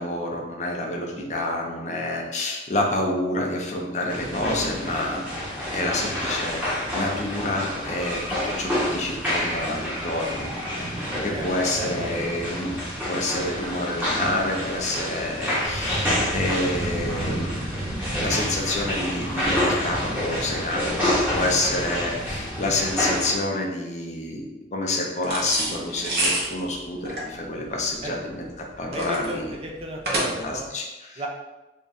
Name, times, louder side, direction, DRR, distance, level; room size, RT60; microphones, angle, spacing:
voice 1, 0.0-5.3 5.7-10.5 10.8-11.0 11.2-12.7 13.1-17.5 18.2-29.5 30.2-31.2, left 2 dB, 40° left, 0 dB, 0.6 m, -28 dB
sound 1, 4.1-23.4, equal, 10° right, 0.9 m, -28 dB
sound 2, 25.2-30.7, right 1 dB, 60° right, 0.8 m, -29 dB
voice 2, 28.9-30.7 31.2-31.3, right 1 dB, 35° right, 0 dB, 0.5 m, -33 dB
3.6 x 2.3 x 4.0 m, 1.1 s
head